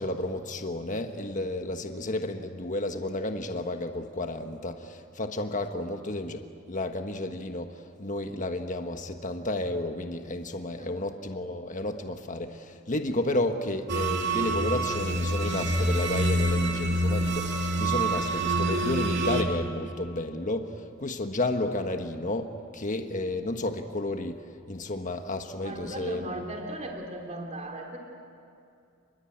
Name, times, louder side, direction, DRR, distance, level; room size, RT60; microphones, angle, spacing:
voice 1, 0.0-24.4 24.7-26.3, left 2 dB, 40° left, 6 dB, 1.4 m, -32 dB
sound 1, 13.9-19.4, right 2 dB, 55° right, 2.8 m, -26 dB
voice 2, 25.6-28.0, right 1 dB, 35° right, 1 dB, 3.2 m, -37 dB
30.0 x 22.0 x 8.8 m, 2.4 s
head